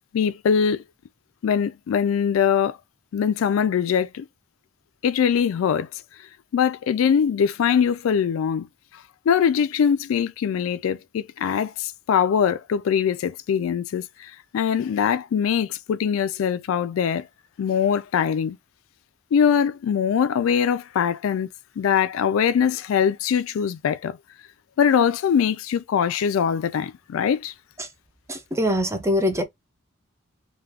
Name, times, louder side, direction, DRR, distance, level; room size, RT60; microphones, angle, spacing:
voice 1, 0.1-0.8 1.4-2.8 3.1-4.3 5.0-5.9 6.5-8.7 9.3-17.3 17.6-18.6 19.3-21.5 21.8-24.2 24.8-27.5, left 7 dB, 85° left, 0.3 m, -22 dB
voice 2, 28.3-29.4, equal, 15° right, 0.5 m, -23 dB
2.3 x 2.3 x 3.3 m
head